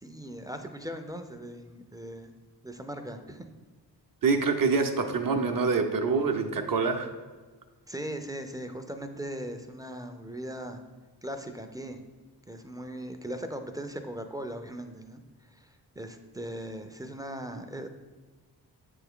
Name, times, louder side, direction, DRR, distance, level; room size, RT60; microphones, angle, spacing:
voice 1, 0.0-2.3 2.6-3.5 7.9-10.8 11.2-12.0 12.5-15.2 15.5-17.9, right 1 dB, 10° right, 6 dB, 0.4 m, -39 dB
voice 2, 4.2-7.1, right 4 dB, 55° right, 4 dB, 0.6 m, -26 dB
7.5 x 3.5 x 3.6 m, 1.3 s
cardioid pair, 60°, 42 cm